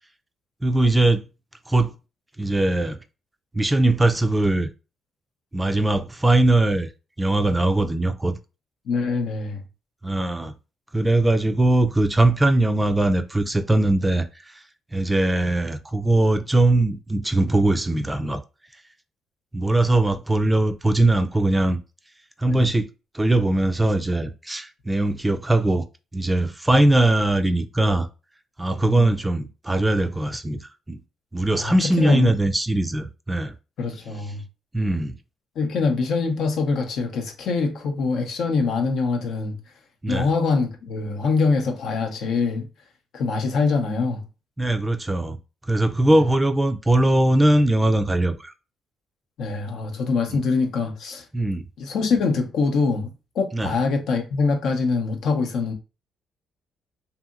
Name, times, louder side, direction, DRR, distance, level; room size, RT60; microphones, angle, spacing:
voice 1, 0.6-1.2 1.7-1.9 2.4-3.0 3.5-4.7 5.5-6.9 7.2-8.4 10.0-10.5 10.9-14.6 14.9-18.4 19.5-21.8 22.4-22.9 23.1-25.8 26.1-28.1 28.6-31.0 31.3-33.5 34.7-35.1 40.0-40.3 44.6-45.4 45.7-48.5 51.3-51.6 53.5-53.7, right 1 dB, 15° right, 0.3 m, -20 dB
voice 2, 8.9-9.6 22.5-22.6 28.8-29.1 31.6-32.3 33.8-34.4 35.6-39.6 40.1-42.7 43.1-44.2 49.4-51.2 51.8-53.1 53.4-55.7, left 4 dB, 75° left, 0.6 m, -24 dB
2.7 x 2.7 x 2.3 m
cardioid pair, 90°, 0 cm